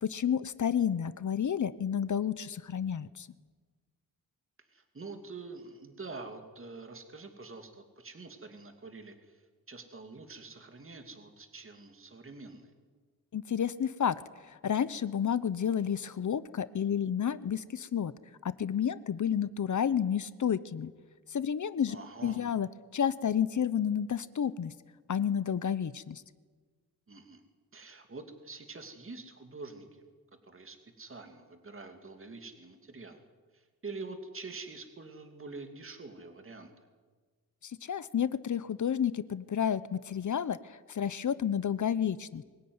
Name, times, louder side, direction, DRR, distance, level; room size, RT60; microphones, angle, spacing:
voice 1, 0.0-3.3 13.3-14.1 14.5-18.1 18.4-20.9 21.3-22.0 22.2-24.7 25.1-26.2 37.6-42.4, left 8 dB, 55° left, 16 dB, 0.8 m, -30 dB
voice 2, 4.7-12.7 21.9-22.4 27.1-27.4 27.7-30.0 30.4-33.2 33.5-36.7, right 3 dB, 35° right, 6 dB, 2.6 m, -46 dB
24.0 x 16.5 x 9.6 m, 1.4 s
wide cardioid pair, 105°, 37 cm